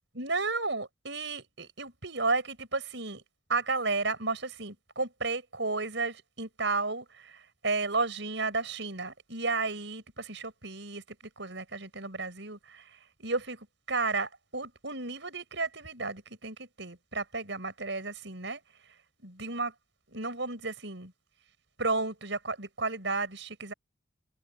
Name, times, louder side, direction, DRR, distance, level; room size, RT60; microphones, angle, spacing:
voice 1, 0.2-3.2 3.5-11.0 11.4-18.6 19.2-19.7 20.1-21.1 21.8-23.7, right 3 dB, 70° right, 5.3 m, -33 dB
head